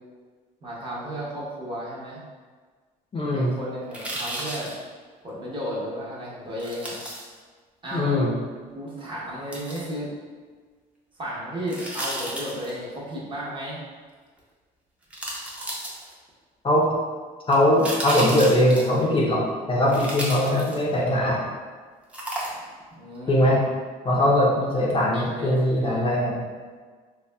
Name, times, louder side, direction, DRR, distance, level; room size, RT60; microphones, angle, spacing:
voice 1, 0.6-2.2 3.3-4.7 5.2-6.9 7.8-8.1 8.7-10.1 11.2-13.8 22.9-23.6 25.1-26.0, equal, 30° right, -7 dB, 0.9 m, -33 dB
voice 2, 3.1-3.6 7.9-8.3 16.6-16.8 17.5-21.4 23.3-23.6 24.0-26.4, left 1 dB, 30° left, -4 dB, 0.5 m, -21 dB
sound 1, 3.9-4.8 6.6-7.2 9.5-9.9 11.7-12.8 14.4-14.5 15.1-16.3 17.5-19.0 19.9-21.0 22.1-22.8 23.2-23.3, right 1 dB, 5° right, 0.6 m, -33 dB
4.0 x 2.0 x 2.2 m, 1.5 s
cardioid pair, 110°, 17 cm